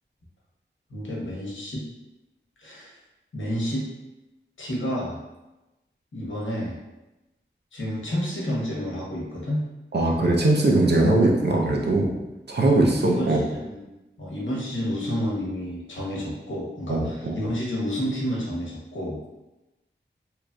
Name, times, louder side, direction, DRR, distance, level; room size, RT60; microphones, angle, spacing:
voice 1, 0.9-1.8 2.6-3.0 3.3-3.9 4.6-5.2 6.1-6.8 7.7-9.6 12.6-13.9 14.2-19.2, equal, 85° left, -4 dB, 0.8 m, -30 dB
voice 2, 9.9-12.1 12.5-13.4 16.9-17.4, right 2 dB, 60° right, -1 dB, 0.5 m, -20 dB
2.9 x 2.5 x 2.2 m, 1.0 s
wide cardioid pair, 75°, 19 cm